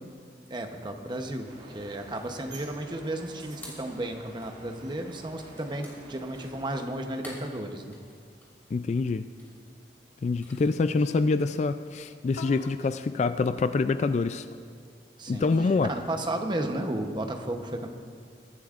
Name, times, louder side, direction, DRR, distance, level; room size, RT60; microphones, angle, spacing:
voice 1, 0.5-1.5 1.7-8.0 15.2-15.4 15.8-17.9, right 1 dB, 25° right, 4 dB, 0.9 m, -33 dB
sound 1, 1.4-6.9, right 2 dB, 45° right, 1.5 m, -48 dB
sound 2, 4.3-11.8, left 1 dB, 10° left, 2.7 m, -53 dB
voice 2, 8.7-9.3 10.2-14.5 15.3-15.9, left 3 dB, 40° left, 11 dB, 0.3 m, -26 dB
sound 3, 10.3-10.4 10.6-10.7 11.0-11.5 12.3-12.9 14.0-14.9 15.5-16.1, left 2 dB, 80° left, 0.7 m, -45 dB
22.5 x 12.0 x 2.5 m, 2.1 s
head